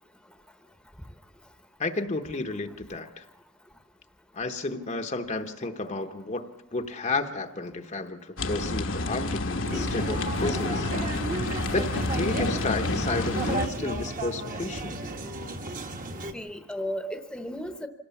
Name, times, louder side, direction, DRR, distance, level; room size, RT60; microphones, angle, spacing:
voice 1, 1.8-3.2 4.3-6.4 6.7-11.2 11.7-15.1, left 3 dB, 35° left, 6 dB, 0.9 m, -32 dB
sound 1, 8.4-13.7, left 2 dB, 65° left, 1.2 m, -29 dB
sound 2, 9.6-16.3, right 2 dB, 40° right, 1.4 m, -34 dB
voice 2, 9.7-10.0 16.3-17.9, equal, 5° left, 7 dB, 1.0 m, -34 dB
25.5 x 17.5 x 7.1 m, 0.94 s
head